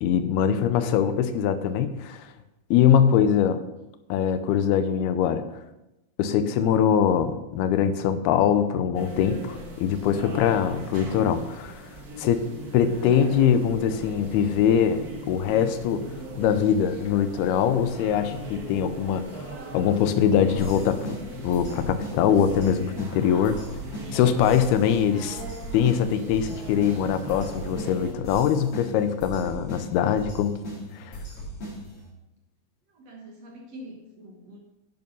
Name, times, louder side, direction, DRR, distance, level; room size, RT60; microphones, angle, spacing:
voice 1, 0.0-2.3 2.7-3.6 4.1-5.5 6.2-11.8 12.2-12.4 12.7-16.0 16.4-19.2 19.7-21.2 21.4-23.6 24.1-25.4 25.7-30.5 31.0-31.2, left 8 dB, 85° left, 10 dB, 2.7 m, -22 dB
sound 1, 8.9-28.1, right 1 dB, 75° right, 0.8 m, -39 dB
voice 2, 12.4-12.7 32.9-34.6, equal, 55° right, 0 dB, 2.2 m, -45 dB
sound 2, 20.6-32.1, equal, 35° left, 5.1 m, -39 dB
11.0 x 9.4 x 5.4 m, 0.94 s
omnidirectional pair, 4.5 m